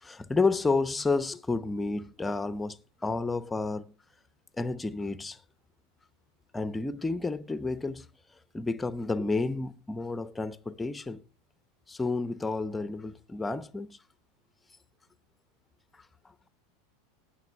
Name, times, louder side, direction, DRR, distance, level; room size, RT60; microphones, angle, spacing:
voice 1, 0.0-3.9 4.6-5.4 6.5-8.1 8.5-11.2 11.9-14.0, left 3 dB, 15° left, 0.8 m, -30 dB
19.0 x 6.5 x 3.5 m
hypercardioid pair, 85°, 0 cm